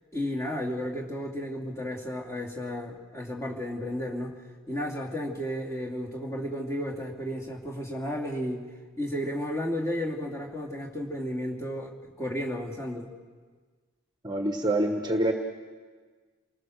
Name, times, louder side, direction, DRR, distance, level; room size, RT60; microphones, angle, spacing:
voice 1, 0.1-4.3 4.7-8.6 9.0-13.1, equal, 15° left, -1 dB, 2.8 m, -33 dB
voice 2, 14.2-15.3, right 1 dB, 20° right, 4 dB, 1.2 m, -26 dB
29.0 x 20.0 x 6.6 m, 1.5 s
head